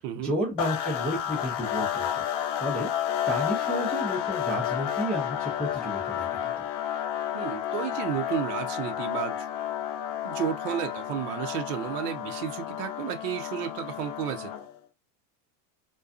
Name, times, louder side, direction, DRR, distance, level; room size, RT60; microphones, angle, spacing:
voice 1, 0.2-2.3 2.6-2.9 3.3-6.6, equal, 5° left, 0.4 m, -32 dB
sound 1, 0.6-14.8, left 10 dB, 55° left, 0.5 m, -31 dB
voice 2, 7.3-9.4 10.2-14.5, right 10 dB, 90° right, 0.7 m, -32 dB
2.5 x 2.3 x 2.4 m
supercardioid pair, 155°, 45 cm